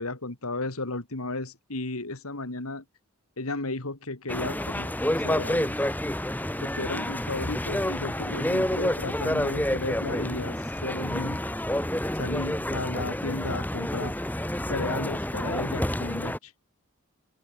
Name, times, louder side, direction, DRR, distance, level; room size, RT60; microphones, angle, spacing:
voice 1, 0.0-2.8 3.4-4.9 5.2-5.8 6.6-11.4 12.1-14.2 14.7-16.5, left 2 dB, 85° left, 2.6 m, -34 dB
sound 1, 4.3-16.4, left 1 dB, 10° left, 1.9 m, -29 dB
head